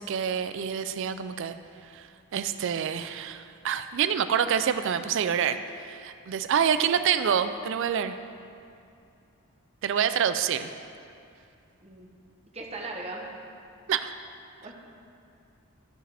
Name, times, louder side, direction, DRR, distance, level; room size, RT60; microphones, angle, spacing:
voice 1, 0.0-1.6 1.9-8.2 9.8-10.7 13.9-14.1, right 8 dB, 55° right, 11 dB, 0.3 m, -27 dB
voice 2, 12.5-13.3 14.6-14.7, right 2 dB, 30° right, -1 dB, 0.9 m, -38 dB
12.5 x 4.9 x 3.4 m, 2.5 s
head